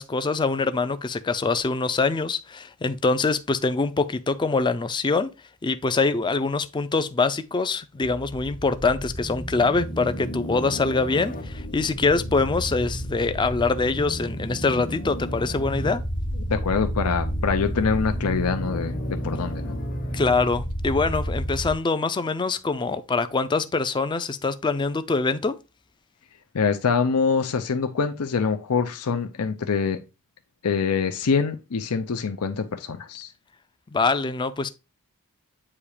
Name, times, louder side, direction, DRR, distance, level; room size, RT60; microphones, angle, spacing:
voice 1, 0.0-5.3 5.6-16.0 20.1-25.5 33.9-34.7, left 3 dB, 20° left, 0.4 m, -24 dB
sound 1, 8.0-21.7, equal, 40° left, 1.0 m, -31 dB
voice 2, 16.5-19.8 26.5-30.0 30.6-33.3, left 5 dB, 85° left, 0.6 m, -25 dB
8.5 x 2.9 x 4.9 m
head